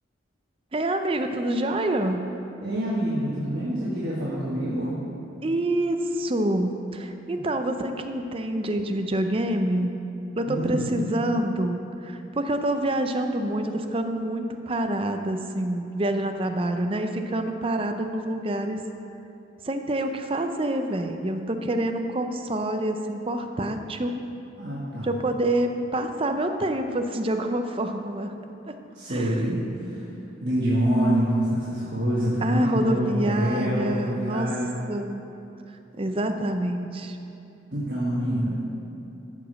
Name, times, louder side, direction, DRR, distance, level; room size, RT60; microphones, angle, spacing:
voice 1, 0.7-2.2 5.4-9.9 10.4-18.8 19.6-24.2 25.0-28.3 28.6-28.7 29.1-29.4 32.4-34.5 34.9-35.2 35.9-37.2, right 1 dB, 30° right, 6 dB, 0.5 m, -27 dB
voice 2, 2.6-5.0 10.5-10.9 24.6-25.1 28.9-30.0 30.4-34.7 37.7-38.6, right 1 dB, 55° right, -8 dB, 1.6 m, -26 dB
13.0 x 5.0 x 6.3 m, 2.8 s
head